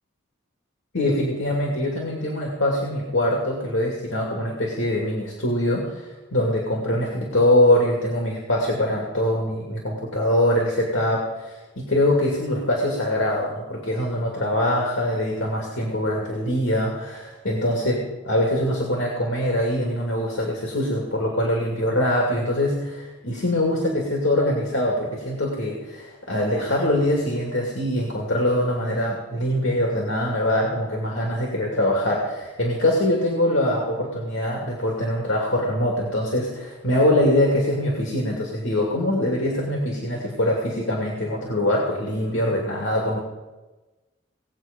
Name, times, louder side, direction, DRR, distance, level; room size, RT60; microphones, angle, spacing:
voice 1, 0.9-43.2, left 1 dB, 90° left, -1 dB, 2.5 m, -23 dB
19.0 x 8.2 x 5.3 m, 1.2 s
head